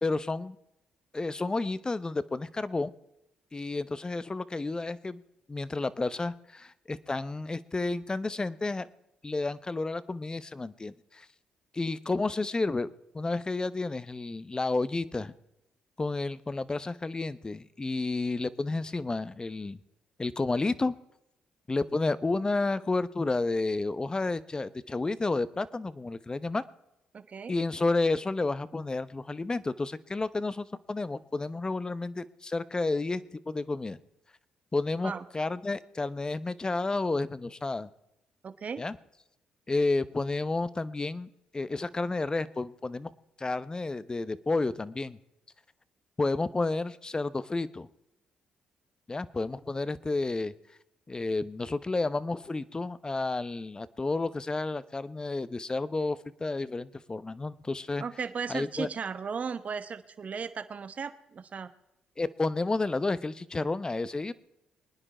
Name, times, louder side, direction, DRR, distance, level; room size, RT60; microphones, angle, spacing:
voice 1, 0.0-0.6 1.1-2.9 3.5-5.2 5.5-8.9 9.2-11.3 11.7-12.9 13.1-15.3 16.0-19.8 20.2-20.9 21.7-26.6 27.5-34.0 34.7-37.9 38.8-39.0 39.7-43.1 43.4-45.2 46.2-47.9 49.1-50.5 51.1-58.0 58.5-58.9 62.2-64.3, left 3 dB, 25° left, 16 dB, 0.9 m, -31 dB
voice 2, 27.1-27.5 35.0-35.2 38.4-38.8 58.0-61.7, right 6 dB, 50° right, 11 dB, 1.1 m, -36 dB
23.0 x 9.9 x 4.4 m, 0.85 s
supercardioid pair, 60°, 3 cm